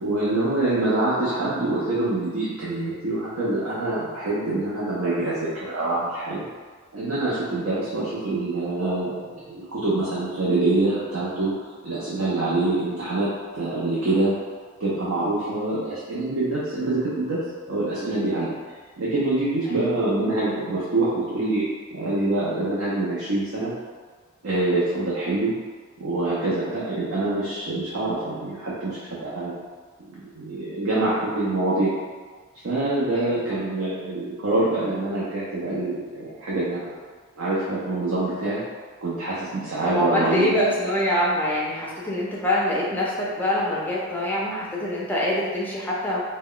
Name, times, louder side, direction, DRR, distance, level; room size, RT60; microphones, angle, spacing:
voice 1, 0.0-6.4 6.9-11.5 11.8-13.3 13.5-14.3 14.8-18.5 19.0-21.6 21.9-23.7 24.4-25.5 26.0-29.6 30.0-31.9 32.6-36.9 37.4-38.6 39.0-40.6, right 2 dB, 65° right, -8 dB, 0.5 m, -25 dB
voice 2, 33.1-33.8 39.8-46.2, left 1 dB, 10° left, -5 dB, 0.4 m, -25 dB
2.2 x 2.1 x 3.7 m, 1.5 s
head